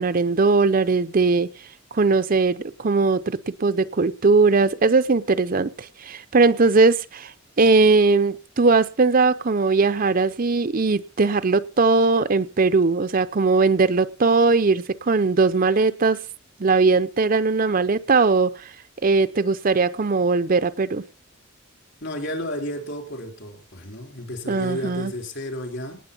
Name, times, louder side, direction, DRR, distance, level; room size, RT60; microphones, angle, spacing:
voice 1, 0.0-1.5 1.9-16.2 16.6-18.7 19.0-21.0 24.5-25.1, right 4 dB, 45° right, 13 dB, 0.6 m, -19 dB
voice 2, 22.0-26.0, equal, 60° left, 2 dB, 3.8 m, -32 dB
18.5 x 7.7 x 5.3 m, 0.37 s
head